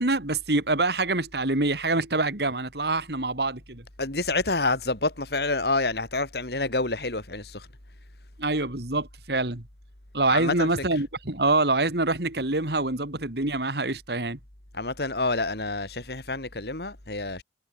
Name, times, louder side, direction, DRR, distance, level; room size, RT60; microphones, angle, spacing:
voice 1, 0.0-3.8 8.4-9.6 10.1-14.4, right 2 dB, 65° right, 2.7 m, -25 dB
voice 2, 4.0-7.7 10.3-10.7 14.7-17.4, left 3 dB, 65° left, 3.2 m, -28 dB
head